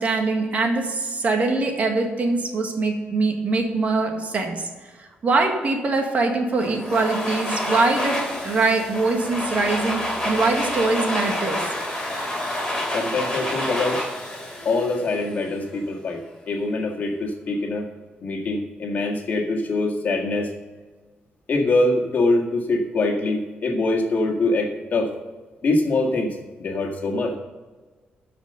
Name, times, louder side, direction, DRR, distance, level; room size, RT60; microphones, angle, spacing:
voice 1, 0.0-4.7 5.0-11.6, right 3 dB, 45° right, 3 dB, 1.7 m, -23 dB
Domestic sounds home sounds, 6.6-15.5, left 1 dB, 10° left, 3.2 m, -28 dB
voice 2, 12.9-14.0 14.7-17.9 18.2-20.5 21.5-25.1 25.6-26.3 26.6-27.4, left 2 dB, 50° left, 0 dB, 1.9 m, -23 dB
12.5 x 5.1 x 6.7 m, 1.3 s
cardioid pair, 130°, 4 cm